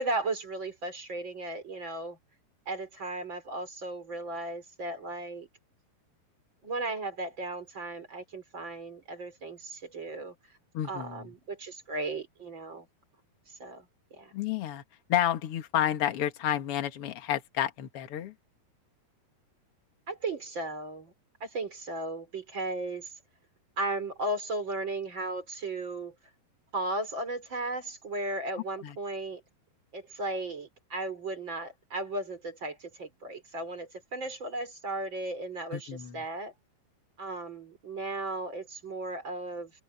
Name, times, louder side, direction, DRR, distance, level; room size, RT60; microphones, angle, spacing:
voice 1, 0.0-2.2 2.7-5.5 6.6-10.3 10.9-12.9 13.6-13.9 14.1-14.3 20.1-21.1 21.4-23.1 23.8-26.1 26.7-29.4 29.9-36.5 37.2-39.7, right 2 dB, 30° right, 4.7 m, -35 dB
voice 2, 10.7-11.2 14.3-14.8 15.1-18.3 28.8-29.0 35.7-36.2, left 11 dB, 50° left, 1.9 m, -30 dB
open air
omnidirectional pair, 4.6 m